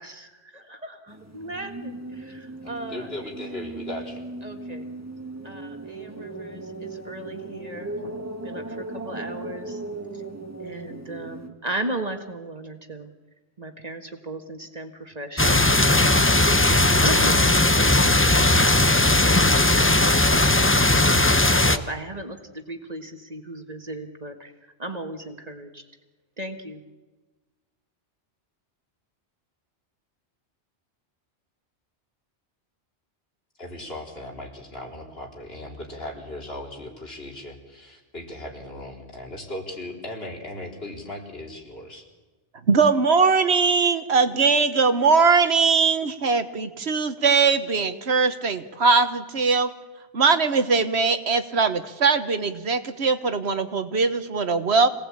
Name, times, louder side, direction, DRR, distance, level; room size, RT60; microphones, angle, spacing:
voice 1, 0.0-3.1 4.4-4.9 5.4-9.8 10.1-10.2 10.6-13.1 13.6-16.5 16.8-21.1 21.5-24.5 24.8-25.8 26.4-26.8, right 1 dB, 35° right, 5 dB, 1.8 m, -36 dB
sound 1, 1.1-11.5, right 2 dB, 15° right, 1.8 m, -37 dB
voice 2, 2.9-4.2 33.6-42.0, left 1 dB, 60° left, 0 dB, 4.2 m, -37 dB
sound 2, 15.4-21.8, left 2 dB, 15° left, 0.7 m, -18 dB
voice 3, 42.7-49.7 50.1-54.9, right 4 dB, 70° right, 10 dB, 1.5 m, -21 dB
26.5 x 18.0 x 8.7 m, 1.3 s
omnidirectional pair, 1.2 m